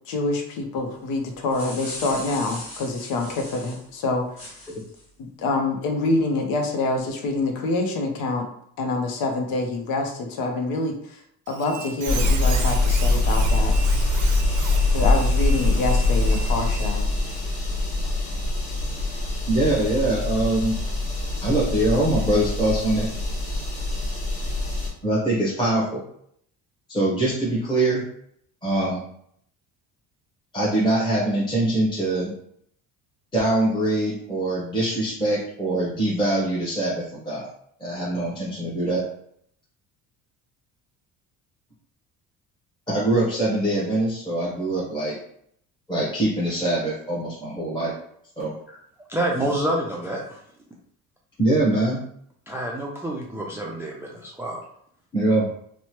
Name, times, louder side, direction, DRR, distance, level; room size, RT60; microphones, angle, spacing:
voice 1, 0.1-4.3 5.2-8.5 8.8-11.2 11.5-13.7 14.9-17.0, left 2 dB, 85° left, 4 dB, 0.7 m, -26 dB
sound 1, 1.3-3.8 4.4-5.0, left 1 dB, 40° left, 1.3 m, -39 dB
Squeak, 11.5-17.4, right 7 dB, 60° right, 0.5 m, -37 dB
sound 2, 12.1-24.9, left 2 dB, 55° left, 1.3 m, -23 dB
voice 2, 19.5-20.8 21.4-23.1 25.0-26.0 26.9-28.0 28.6-29.0 30.5-32.3 33.3-37.5 37.8-39.0 42.9-45.2 45.9-47.9 48.4-48.5 51.4-52.0 55.1-55.5, right 1 dB, 15° left, -7 dB, 0.8 m, -23 dB
voice 3, 49.1-50.4 52.5-54.6, right 1 dB, 10° right, -2 dB, 0.3 m, -28 dB
3.0 x 2.1 x 2.9 m, 0.69 s
cardioid pair, 120°, 35 cm